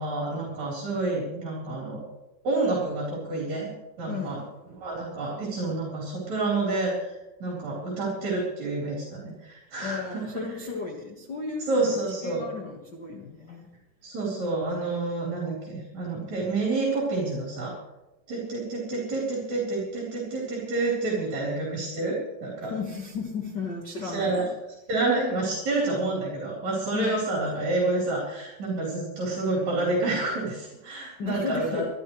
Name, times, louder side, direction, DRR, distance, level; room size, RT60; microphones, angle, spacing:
voice 1, 0.0-2.0 2.4-3.7 4.0-4.4 4.8-7.1 7.4-10.3 11.7-12.4 14.0-17.7 18.3-22.7 24.0-24.5 24.9-31.8, right 2 dB, 45° right, -5 dB, 4.9 m, -28 dB
voice 2, 4.1-4.4 9.8-11.8 12.2-13.7 22.7-24.5 26.9-27.2 31.2-31.8, left 5 dB, 85° left, 0 dB, 0.9 m, -34 dB
26.0 x 12.0 x 3.2 m, 1.0 s
omnidirectional pair, 4.7 m